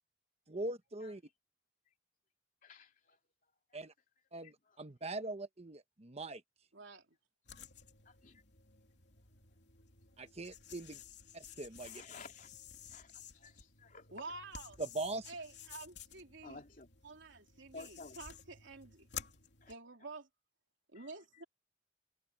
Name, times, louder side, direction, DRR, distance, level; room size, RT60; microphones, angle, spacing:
voice 1, 0.5-1.2 3.7-3.9 4.3-6.4 10.2-11.0 11.3-12.0 14.8-15.3, right 2 dB, 35° right, 1.1 m, -41 dB
voice 2, 2.6-3.2 4.4-4.8 8.0-8.4 11.8-12.5 12.9-14.1 16.4-16.9 17.7-18.2 19.6-19.7 20.9-21.1, left 3 dB, 45° left, 3.2 m, -54 dB
voice 3, 6.7-7.1 14.1-14.8 15.3-16.6 17.0-19.1 19.7-20.3 20.9-21.4, right 3 dB, 70° right, 3.5 m, -49 dB
sound 1, 7.5-19.7, left 8 dB, 65° left, 3.1 m, -53 dB
head